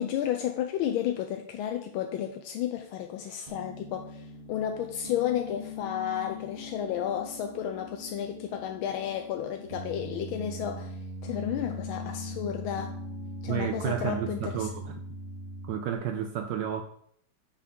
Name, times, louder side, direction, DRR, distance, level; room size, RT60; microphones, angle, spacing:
voice 1, 0.0-11.0 11.2-13.0 13.4-14.7, left 10 dB, 80° left, 4 dB, 1.4 m, -32 dB
Piano, 3.5-15.9, left 2 dB, 35° right, 1.0 m, -41 dB
voice 2, 13.5-15.0 15.6-16.8, right 9 dB, 75° right, 6 dB, 1.0 m, -31 dB
5.6 x 5.1 x 5.5 m, 0.65 s
omnidirectional pair, 2.3 m